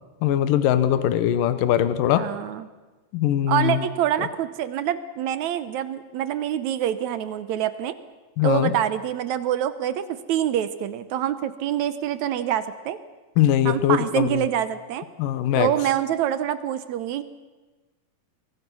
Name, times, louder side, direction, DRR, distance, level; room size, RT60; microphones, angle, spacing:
voice 1, 0.2-2.3 3.1-3.8 8.4-8.7 13.4-14.4 15.2-15.7, left 11 dB, 75° left, 12 dB, 2.6 m, -21 dB
voice 2, 2.2-2.7 3.5-8.0 8.4-13.0 13.7-15.1 15.6-17.2, right 10 dB, 70° right, 13 dB, 1.9 m, -26 dB
24.5 x 22.5 x 6.2 m, 1.2 s
omnidirectional pair, 4.0 m